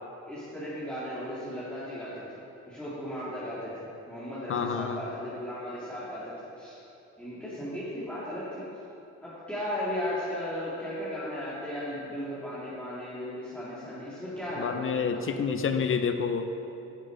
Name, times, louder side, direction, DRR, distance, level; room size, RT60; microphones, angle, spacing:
voice 1, 0.3-2.2 2.7-3.7 4.1-6.8 7.2-8.6 9.2-15.2, left 1 dB, 5° left, -11 dB, 2.1 m, -36 dB
voice 2, 4.5-5.0 14.6-16.5, left 6 dB, 45° left, 8 dB, 0.6 m, -28 dB
10.0 x 6.2 x 5.0 m, 2.8 s
cardioid pair, 90°, 30 cm